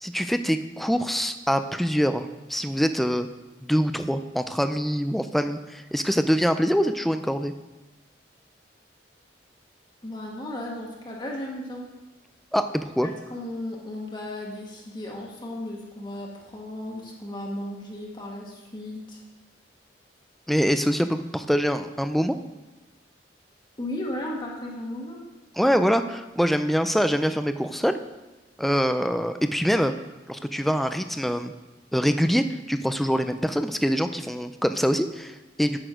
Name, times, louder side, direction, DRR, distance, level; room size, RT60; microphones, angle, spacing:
voice 1, 0.0-3.3 3.6-7.5 12.5-13.1 20.5-22.4 25.6-28.0 28.6-29.9 30.3-31.5 31.9-35.8, equal, ahead, 9 dB, 0.3 m, -24 dB
voice 2, 10.0-11.9 13.0-19.2 23.8-25.2, left 1 dB, 25° left, -2 dB, 1.4 m, -35 dB
9.1 x 6.2 x 5.0 m, 1.1 s
head